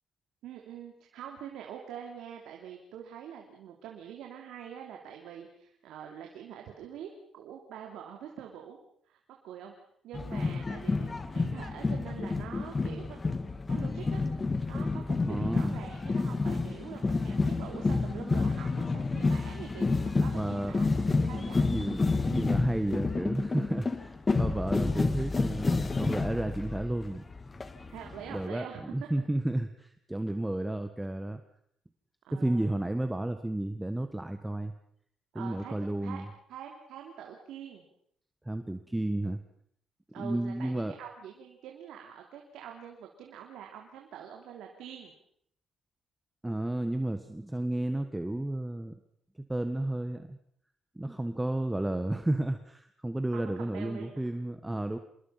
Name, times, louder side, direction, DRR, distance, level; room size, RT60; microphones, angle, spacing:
voice 1, 0.4-8.8 9.1-9.2 9.4-9.7 10.0-13.2 13.7-14.3 14.6-20.9 21.2-22.0 27.9-28.8 32.3-32.7 35.3-35.7 36.0-36.2 36.5-37.8 40.1-45.1 53.3-54.2, right 9 dB, 85° right, 2 dB, 3.0 m, -45 dB
sound 1, 10.1-28.4, left 3 dB, 30° left, 1.8 m, -30 dB
voice 2, 15.2-15.8 20.3-20.8 21.6-27.2 28.3-31.4 32.3-34.7 35.3-36.3 38.4-39.4 40.2-40.9 46.4-48.9 49.5-50.4 50.9-55.0, right 1 dB, 10° right, 8 dB, 1.5 m, -32 dB
27.0 x 21.5 x 5.8 m, 0.68 s
cardioid pair, 90°, 0 cm